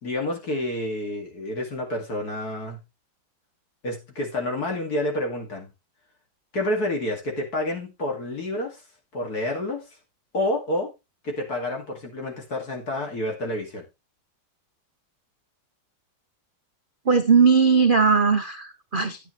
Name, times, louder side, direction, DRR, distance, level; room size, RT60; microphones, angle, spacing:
voice 1, 0.0-2.8 3.8-5.7 6.5-8.8 9.1-9.8 10.3-10.9 11.2-13.9, left 1 dB, 50° left, 1 dB, 3.0 m, -29 dB
voice 2, 17.1-19.2, right 5 dB, 75° right, 7 dB, 0.4 m, -19 dB
9.8 x 9.5 x 3.2 m, 0.24 s
omnidirectional pair, 2.1 m